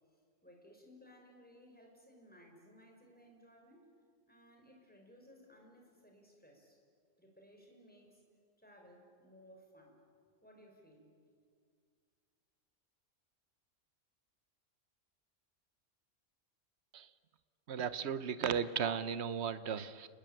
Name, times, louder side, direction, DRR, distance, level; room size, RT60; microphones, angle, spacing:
voice 1, 0.1-3.9 4.3-6.8 7.2-8.2 8.6-10.0 10.4-11.1, equal, 5° left, 1 dB, 5.6 m, -60 dB
voice 2, 17.7-20.1, right 7 dB, 60° right, 14 dB, 1.2 m, -35 dB
30.0 x 20.0 x 9.0 m, 2.1 s
omnidirectional pair, 1.3 m